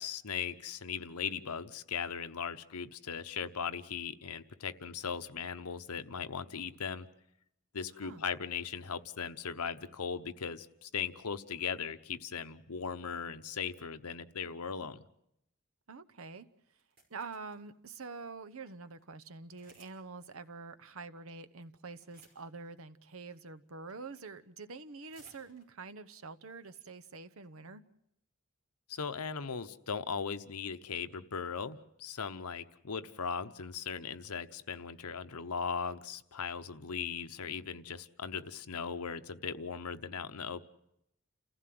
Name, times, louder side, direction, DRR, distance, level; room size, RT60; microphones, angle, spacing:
voice 1, 0.0-7.1 7.7-15.0 28.9-40.6, left 6 dB, 90° left, 0.9 m, -38 dB
voice 2, 15.9-16.5 17.1-27.8, right 4 dB, 70° right, 0.9 m, -46 dB
sound 1, 16.7-17.6 18.2-18.3 18.6-18.7 18.9-19.0 19.5-20.0 20.2-20.3 21.3-21.6 21.9-22.6 23.3-23.5 23.9-24.4 24.7-25.9 26.4-26.5 26.6-26.8 27.2-27.5, right 2 dB, 45° right, 5.6 m, -62 dB
29.0 x 15.5 x 7.8 m
head